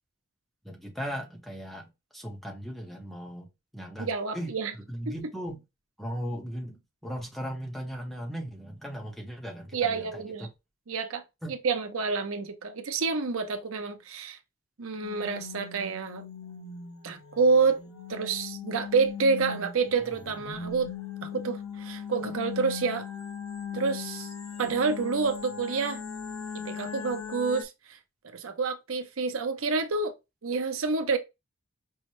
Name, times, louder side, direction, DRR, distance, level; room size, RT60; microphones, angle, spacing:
voice 1, 0.6-1.9 2.1-3.5 3.7-4.1 4.3-4.5 4.9-5.6 6.0-10.5 11.4-11.6, equal, ahead, 0.7 m, -37 dB
voice 2, 4.0-4.7 5.1-5.2 9.7-10.5 10.9-11.2 11.5-14.4 14.8-16.3 17.0-17.8 18.1-20.9 21.2-23.1 23.7-24.3 24.6-26.0 26.5-28.0 28.2-30.1 30.4-31.2, right 4 dB, 80° right, 0.7 m, -28 dB
sound 1, 15.0-27.6, left 7 dB, 75° left, 0.9 m, -39 dB
5.4 x 2.1 x 3.0 m
head